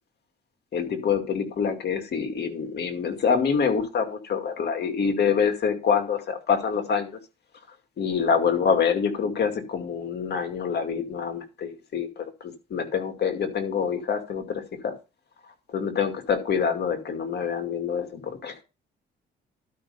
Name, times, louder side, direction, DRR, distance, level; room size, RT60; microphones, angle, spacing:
voice 1, 0.7-7.2 8.0-14.9 15.7-18.6, left 6 dB, 55° left, 6 dB, 2.3 m, -26 dB
12.0 x 5.4 x 5.4 m, 0.29 s
cardioid pair, 90°, 20 cm